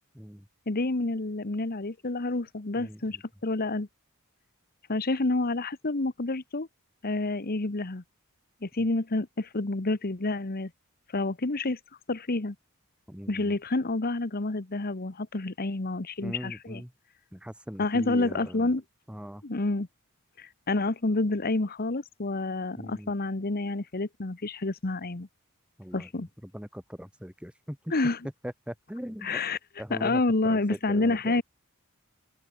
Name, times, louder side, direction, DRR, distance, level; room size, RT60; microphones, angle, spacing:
voice 1, 0.1-0.5 2.8-3.2 13.1-13.6 16.2-16.9 17.3-18.7 19.1-19.4 22.7-23.1 25.8-26.1 26.4-27.9 28.4-29.4 29.8-31.4, equal, 5° right, 2.6 m, -40 dB
voice 2, 0.7-3.2 3.4-3.9 4.9-6.7 7.0-8.0 8.6-10.7 11.1-11.8 12.1-12.5 13.3-16.8 17.8-18.8 19.4-19.9 20.4-25.3 25.9-26.3 27.9-28.2 29.2-29.6 29.9-31.4, left 2 dB, 45° left, 1.2 m, -28 dB
open air
head